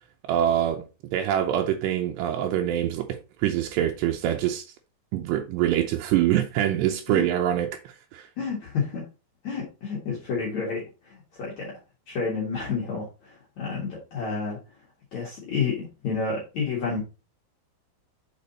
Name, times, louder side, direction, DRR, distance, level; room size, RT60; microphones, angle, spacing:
voice 1, 0.2-0.9 1.1-4.7 5.1-8.3, right 11 dB, 80° right, 2.8 m, -25 dB
voice 2, 8.4-9.0 9.4-11.8 12.1-14.6 15.1-17.0, left 5 dB, 50° left, 2.5 m, -30 dB
6.8 x 4.9 x 4.1 m
omnidirectional pair, 4.9 m